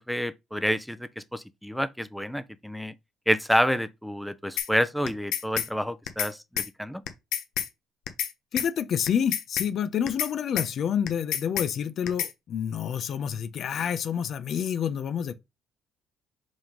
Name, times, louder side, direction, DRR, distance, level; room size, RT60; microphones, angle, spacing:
voice 1, 0.1-2.9 3.3-7.0, equal, ahead, 0.8 m, -28 dB
sound 1, 4.6-4.7 5.1-5.7 6.1-6.3 6.6-6.7 7.1-7.7 8.1-8.3 8.6-8.7 9.1-9.7 10.1-10.3 10.6-10.7 11.1-11.7 12.1-12.3, left 11 dB, 75° left, 1.0 m, -29 dB
voice 2, 8.5-15.3, left 8 dB, 55° left, 0.7 m, -28 dB
5.3 x 3.6 x 5.3 m
cardioid pair, 90°, 0 cm